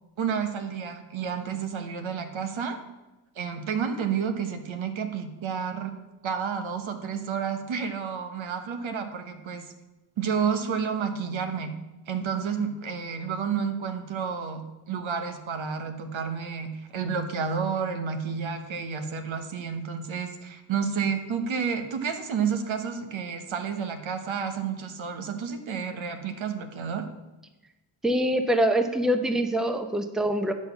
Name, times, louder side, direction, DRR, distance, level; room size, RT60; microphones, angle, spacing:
voice 1, 0.2-2.8 3.4-5.9 6.2-9.7 10.2-11.7 12.1-27.0, right 6 dB, 75° right, 7 dB, 1.2 m, -30 dB
voice 2, 28.0-30.5, right 1 dB, ahead, 7 dB, 0.7 m, -24 dB
10.5 x 4.3 x 6.9 m, 1.1 s
cardioid pair, 95°, 48 cm